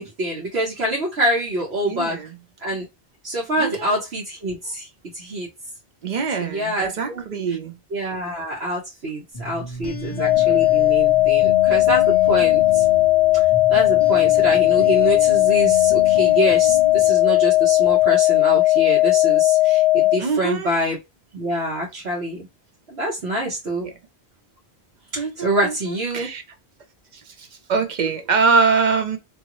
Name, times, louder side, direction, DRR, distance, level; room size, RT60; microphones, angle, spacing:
voice 1, 0.0-2.2 2.6-2.9 3.2-4.9 5.1-5.5 6.5-7.2 7.9-12.8 13.7-21.0 21.3-22.5 22.9-23.9 25.1-26.3, right 1 dB, 75° right, 1.2 m, -25 dB
voice 2, 1.8-2.4 3.6-4.0 6.0-7.8 20.2-20.7 23.8-23.9 25.2-26.4 27.3-29.2, right 5 dB, 50° right, 0.6 m, -23 dB
sound 1, 9.3-18.1, left 2 dB, 35° left, 0.5 m, -34 dB
sound 2, 10.2-20.2, left 17 dB, 75° left, 0.8 m, -17 dB
2.7 x 2.5 x 2.9 m
omnidirectional pair, 1.1 m